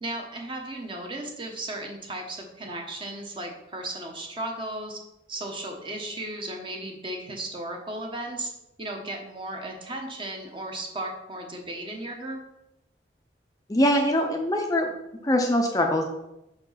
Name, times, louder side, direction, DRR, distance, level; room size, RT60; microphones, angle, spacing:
voice 1, 0.0-5.0 5.3-8.5 8.8-12.4, right 1 dB, 25° right, 2 dB, 1.0 m, -35 dB
voice 2, 13.7-14.9 15.2-16.0, left 1 dB, 20° left, 3 dB, 0.5 m, -23 dB
5.0 x 4.4 x 5.6 m, 0.88 s
head